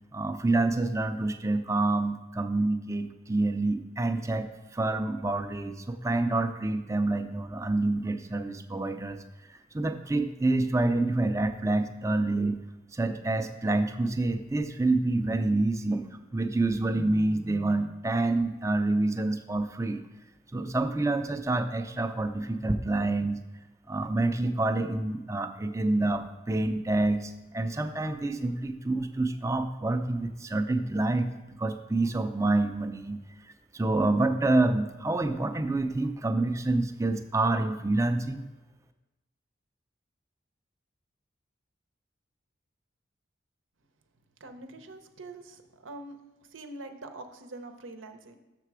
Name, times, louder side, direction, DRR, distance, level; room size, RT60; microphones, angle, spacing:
voice 1, 0.1-9.2 9.5-12.6 12.9-20.0 20.5-23.4 23.9-31.3 31.6-33.2 33.7-38.4, right 2 dB, 15° right, 8 dB, 0.4 m, -27 dB
voice 2, 44.4-46.2 46.5-48.4, right 2 dB, 90° right, 7 dB, 0.8 m, -44 dB
6.8 x 6.7 x 4.8 m, 1.1 s
head